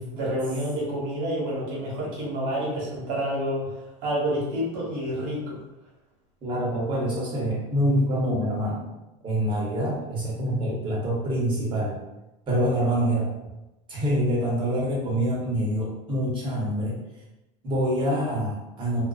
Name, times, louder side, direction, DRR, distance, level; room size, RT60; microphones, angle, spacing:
voice 1, 0.0-5.6, equal, 65° right, -5 dB, 1.2 m, -29 dB
voice 2, 6.4-8.9 9.2-12.0 12.5-13.3 13.9-17.0 17.6-19.1, equal, 30° right, -4 dB, 1.0 m, -25 dB
2.4 x 2.2 x 2.3 m, 0.97 s
supercardioid pair, 130°, 16 cm